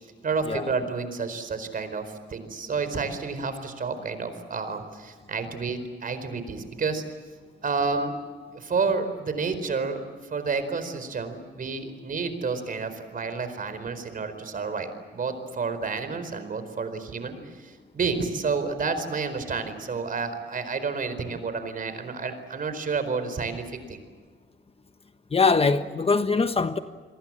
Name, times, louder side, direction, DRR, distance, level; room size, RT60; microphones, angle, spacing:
voice 1, 0.2-7.0 7.6-8.2 8.5-10.0 10.3-24.0, right 4 dB, 45° right, 10 dB, 4.5 m, -30 dB
voice 2, 25.3-26.8, left 4 dB, 30° left, 9 dB, 1.3 m, -22 dB
28.5 x 22.0 x 7.5 m, 1.5 s
cardioid pair, 90°, 20 cm